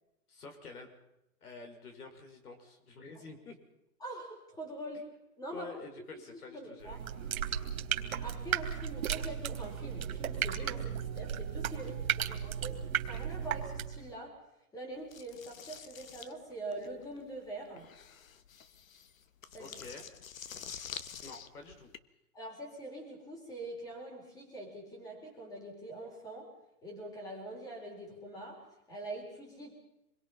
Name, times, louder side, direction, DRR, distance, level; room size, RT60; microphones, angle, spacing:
voice 1, 0.3-0.9 1.4-3.6 5.5-7.2 19.6-20.1 21.2-21.9, left 3 dB, 80° left, 5 dB, 6.1 m, -48 dB
voice 2, 4.0-5.1 5.4-5.7 6.3-7.0 8.2-14.4 14.7-17.9 19.5-19.8 22.3-26.5 26.8-29.7, right 1 dB, 10° left, 0 dB, 4.4 m, -44 dB
sound 1, 6.8-14.1, right 8 dB, 65° right, 3.2 m, -35 dB
sound 2, 15.1-22.0, left 8 dB, 65° left, 1.5 m, -47 dB
27.5 x 22.0 x 5.7 m, 0.88 s
hypercardioid pair, 170°, 44 cm